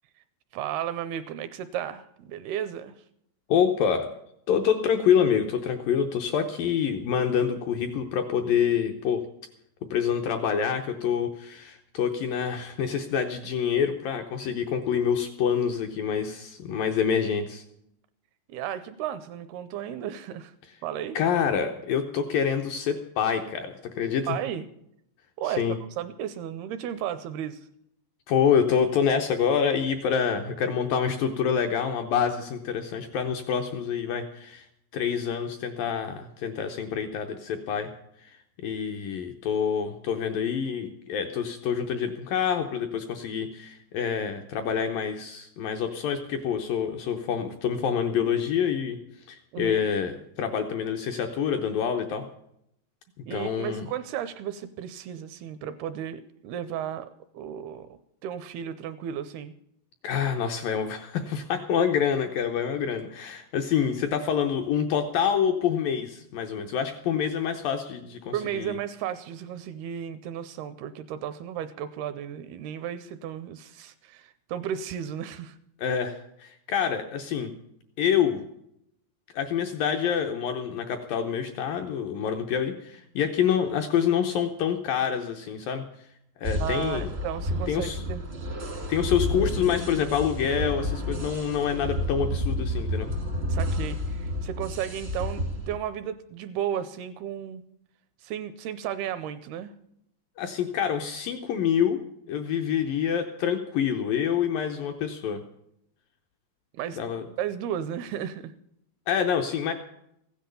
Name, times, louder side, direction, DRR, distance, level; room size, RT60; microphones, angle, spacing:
voice 1, 0.5-3.0 18.5-20.5 20.8-21.2 24.3-24.7 25.4-25.6 26.0-27.6 49.5-49.8 53.3-59.5 68.3-75.6 86.6-88.2 93.5-97.6 98.2-99.7 106.7-107.0 107.4-108.5, right 10 dB, 80° right, 13 dB, 2.3 m, -34 dB
voice 2, 3.5-4.1 4.5-9.2 9.9-17.6 21.2-24.4 25.5-25.8 28.3-34.7 34.9-37.9 38.2-49.0 49.3-52.2 53.3-53.9 60.0-68.8 75.8-77.5 78.0-78.4 79.3-85.8 86.4-87.1 87.7-88.0 88.9-93.1 100.4-102.0 102.3-105.4 107.0-107.2 109.1-109.7, left 7 dB, 80° left, 5 dB, 2.0 m, -27 dB
sound 1, 86.4-95.8, left 1 dB, 55° right, 0.7 m, -30 dB
15.5 x 10.5 x 6.9 m, 0.76 s
omnidirectional pair, 5.1 m